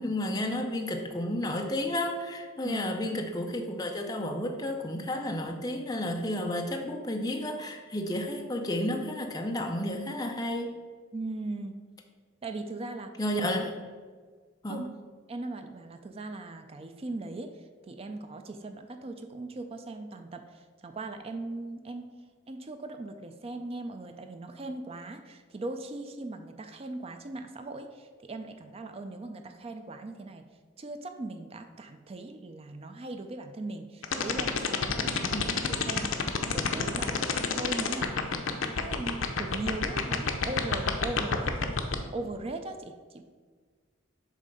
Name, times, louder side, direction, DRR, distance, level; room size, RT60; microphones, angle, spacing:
voice 1, 0.0-10.8 13.2-13.7 14.6-14.8 35.3-35.5, left 1 dB, 20° left, 2 dB, 0.6 m, -32 dB
voice 2, 2.6-3.0 11.1-11.8 12.4-13.1 14.7-14.9 15.3-22.1 22.5-30.4 30.8-35.6 35.9-37.2 37.5-43.2, right 2 dB, 30° right, 7 dB, 0.4 m, -39 dB
sound 1, 34.0-41.9, left 6 dB, 80° left, 0.6 m, -27 dB
7.2 x 3.3 x 5.2 m, 1.5 s
head